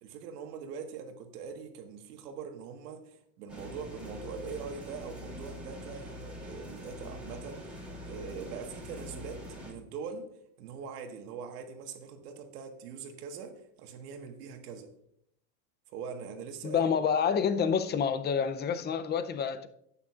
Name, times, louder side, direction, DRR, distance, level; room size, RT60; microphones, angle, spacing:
voice 1, 0.0-7.7 8.1-10.3 10.6-14.9 15.9-16.8, right 6 dB, 85° right, 1.6 m, -42 dB
sound 1, 3.5-9.7, left 1 dB, ahead, 2.9 m, -44 dB
voice 2, 16.6-19.7, left 7 dB, 25° left, 0.5 m, -28 dB
11.5 x 8.8 x 2.4 m
supercardioid pair, 120°, 45 cm